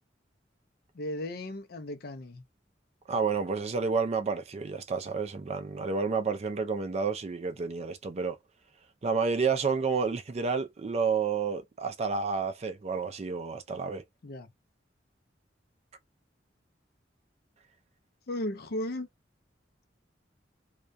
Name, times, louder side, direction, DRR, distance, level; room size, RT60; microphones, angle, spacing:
voice 1, 0.9-2.4 14.2-14.5 18.3-19.1, left 1 dB, 55° left, 0.5 m, -35 dB
voice 2, 3.1-8.4 9.0-14.0, right 5 dB, 35° right, 0.4 m, -30 dB
2.3 x 2.1 x 2.5 m
head